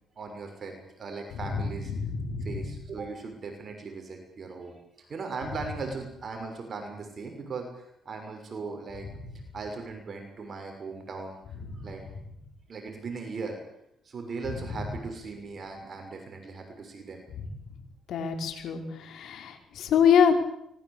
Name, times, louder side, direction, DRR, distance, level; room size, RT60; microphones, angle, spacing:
voice 1, 0.2-1.9 2.4-9.1 9.5-11.4 11.8-12.0 12.7-13.6 14.0-17.2, right 4 dB, 45° right, 4 dB, 6.6 m, -38 dB
voice 2, 1.9-2.5 18.1-20.3, left 8 dB, 75° left, 4 dB, 5.2 m, -24 dB
24.5 x 21.0 x 8.5 m, 0.76 s
cardioid pair, 90°, 0 cm